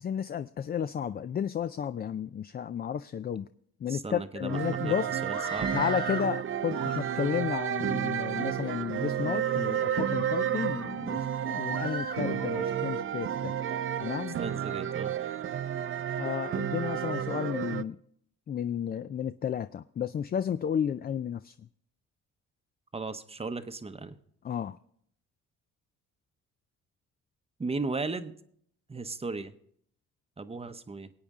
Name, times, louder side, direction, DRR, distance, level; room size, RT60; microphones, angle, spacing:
voice 1, 0.0-3.5 3.8-5.1 5.7-13.5 14.0-14.4 16.2-18.0 18.5-21.5 24.4-24.8, left 8 dB, 35° left, 13 dB, 0.4 m, -32 dB
voice 2, 3.9-5.7 14.4-15.1 22.9-24.2 27.6-28.4 28.9-29.5 30.4-31.1, right 3 dB, 20° right, 10 dB, 0.8 m, -36 dB
sound 1, 4.5-17.8, right 9 dB, 45° right, 0.5 m, -31 dB
Screaming, 5.2-6.3 6.7-7.5 8.1-8.7 9.2-9.4 9.9-10.9 11.7-12.7, equal, 15° left, 1.0 m, -41 dB
21.0 x 8.7 x 3.6 m, 0.67 s
cardioid pair, 90°, 30 cm